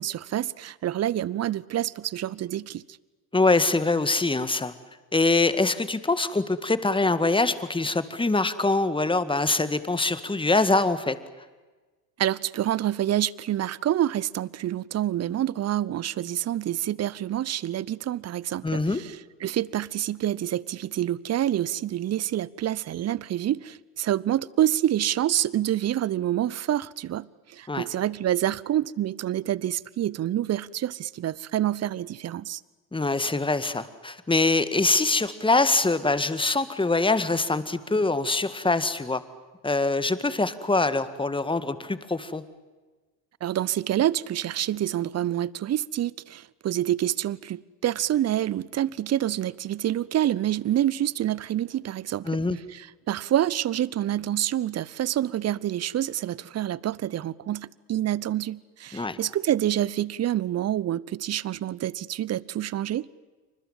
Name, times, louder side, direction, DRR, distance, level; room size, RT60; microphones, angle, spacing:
voice 1, 0.0-2.8 12.2-32.6 43.4-52.3 52.7-63.1, right 12 dB, 30° right, 0.8 m, -27 dB
voice 2, 3.3-4.7 5.1-11.2 18.6-19.0 27.7-27.9 32.9-39.2 39.6-42.4 52.3-52.6 58.9-59.2, left 3 dB, 10° left, 1.9 m, -24 dB
28.0 x 25.5 x 7.5 m
figure-of-eight pair, 65°, 50 cm